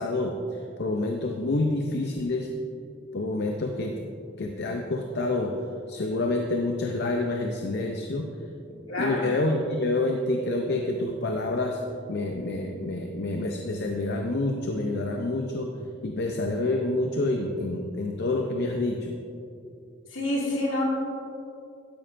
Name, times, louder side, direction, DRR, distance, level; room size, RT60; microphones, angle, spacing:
voice 1, 0.0-2.5 3.1-4.0 4.4-5.5 5.9-8.3 9.0-11.8 12.1-15.7 16.0-19.1, left 2 dB, 55° left, 3 dB, 0.6 m, -28 dB
voice 2, 8.9-9.3 20.1-20.8, left 1 dB, 75° left, -3 dB, 2.3 m, -27 dB
12.5 x 9.8 x 2.6 m, 2.5 s
head